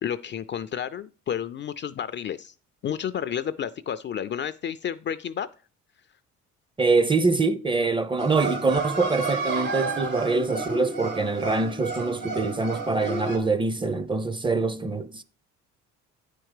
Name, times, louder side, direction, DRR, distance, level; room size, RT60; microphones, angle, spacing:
voice 1, 0.0-2.5 2.8-5.5, left 9 dB, 35° left, 0.4 m, -31 dB
voice 2, 6.8-15.2, right 3 dB, 15° right, 0.5 m, -24 dB
sound 1, 8.2-13.4, right 3 dB, 80° right, 2.3 m, -31 dB
9.0 x 4.5 x 4.8 m
supercardioid pair, 85°, 32 cm